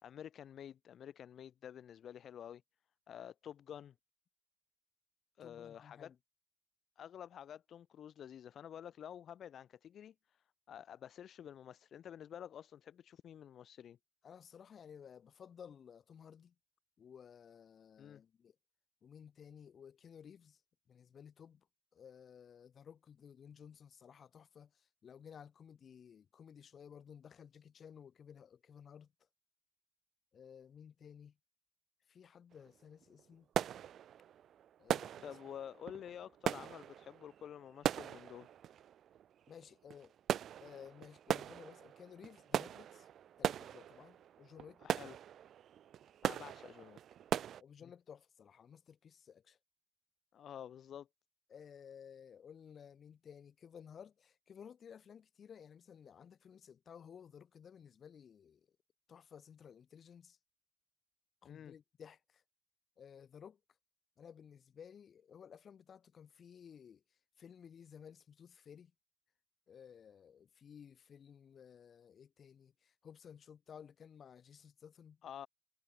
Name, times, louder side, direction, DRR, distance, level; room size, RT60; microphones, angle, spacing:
voice 1, 0.0-2.6 3.1-3.9 5.4-6.1 7.0-14.0 18.0-18.2 35.2-38.5 44.8-45.1 46.2-47.0 50.3-51.1 61.4-61.7 75.2-75.5, left 9 dB, 75° left, 1.6 m, -50 dB
voice 2, 5.4-6.2 14.2-16.5 17.0-18.6 19.0-20.6 20.9-21.7 21.9-29.1 30.3-31.4 32.1-33.5 34.8-35.4 39.5-40.1 40.6-43.1 43.4-44.8 47.6-49.6 51.5-58.7 59.1-60.4 61.4-62.4 63.0-63.6 64.2-67.0 67.4-68.9 69.7-75.2, left 7 dB, 55° left, 5.4 m, -56 dB
sound 1, 32.5-32.7 33.0-47.6, right 10 dB, 90° right, 1.9 m, -40 dB
wide cardioid pair, 160°, 0 cm